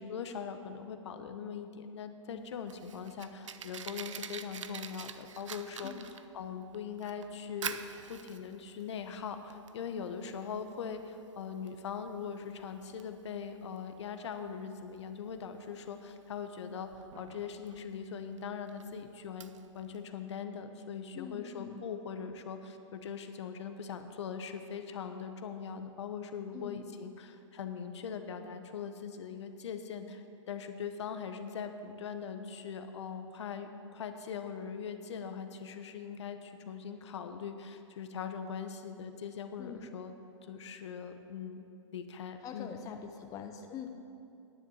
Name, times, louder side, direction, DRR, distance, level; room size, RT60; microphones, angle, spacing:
voice 1, 0.0-7.8 8.1-16.9 17.2-40.1 40.4-41.6 41.9-42.8, left 6 dB, 65° left, 8 dB, 1.0 m, -41 dB
Fire, 2.3-20.0, right 7 dB, 80° right, 0.6 m, -47 dB
voice 2, 5.8-6.1 21.1-21.8 26.5-26.8 39.6-40.0 42.4-43.9, left 7 dB, 20° left, 5 dB, 0.7 m, -44 dB
10.5 x 7.4 x 8.0 m, 2.7 s
hypercardioid pair, 130°, 16 cm